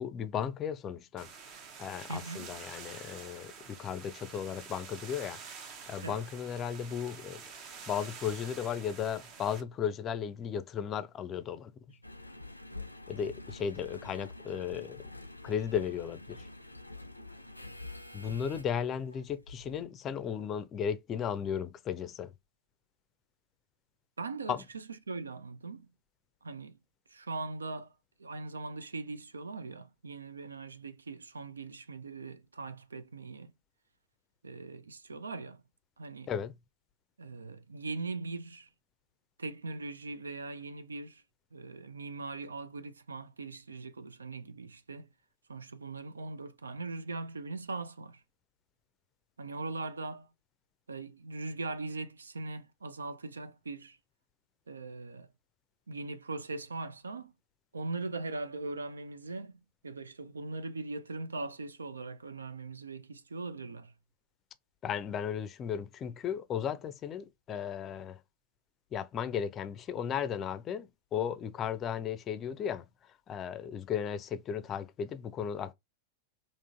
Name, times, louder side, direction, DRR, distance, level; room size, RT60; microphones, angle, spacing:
voice 1, 0.0-1.3 1.8-5.4 5.9-7.4 7.9-11.7 13.1-15.1 15.4-16.5 18.1-22.3 24.5-24.6 36.3-36.5 64.8-68.2 68.9-72.8 73.3-75.7, left 8 dB, 30° left, 0.4 m, -35 dB
sound 1, 1.2-9.6, right 6 dB, 40° right, 0.7 m, -48 dB
voice 2, 2.1-2.6 6.0-6.2 24.2-25.9 26.4-26.8 27.1-27.9 28.2-33.5 34.4-35.6 36.0-36.3 37.2-38.7 39.4-41.2 41.5-45.1 45.5-48.2 49.4-50.3 50.9-54.0 54.7-55.3 55.9-57.3 57.7-59.5 59.8-63.9, right 3 dB, 75° right, 0.3 m, -40 dB
Engine, 12.0-19.9 20.5-20.6, left 2 dB, 90° left, 0.4 m, -47 dB
3.7 x 2.5 x 2.5 m
figure-of-eight pair, 90°, 0 cm